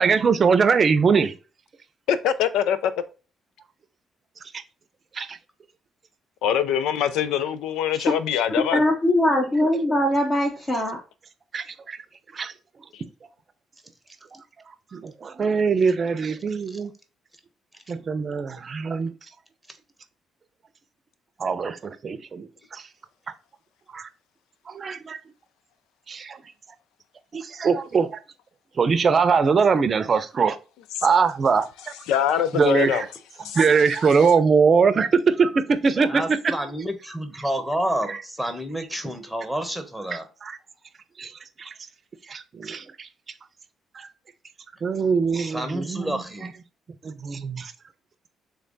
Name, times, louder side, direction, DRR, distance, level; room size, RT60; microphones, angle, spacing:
voice 1, 0.0-1.3 4.5-4.6 5.1-5.4 11.5-12.0 12.3-12.5 14.9-16.9 17.9-19.1 21.4-22.8 23.9-24.1 24.7-25.2 26.1-26.4 27.3-28.2 28.8-30.6 31.0-31.7 32.5-33.1 33.5-36.2 38.1-38.2 40.1-40.6 41.2-41.3 41.6-41.7 42.3-43.1 43.9-44.1 44.8-46.5 47.0-47.7, right 5 dB, 45° right, 0.6 m, -22 dB
voice 2, 2.1-2.9 6.4-8.8 12.9-13.0 31.0-31.1 32.1-33.0 33.4-33.6 34.2-34.3, left 9 dB, 85° left, 0.4 m, -23 dB
voice 3, 8.7-11.0, left 1 dB, 30° left, 1.2 m, -21 dB
voice 4, 35.8-40.3 45.3-46.5, right 1 dB, ahead, 1.1 m, -29 dB
3.4 x 3.3 x 4.0 m
supercardioid pair, 70°, 0 cm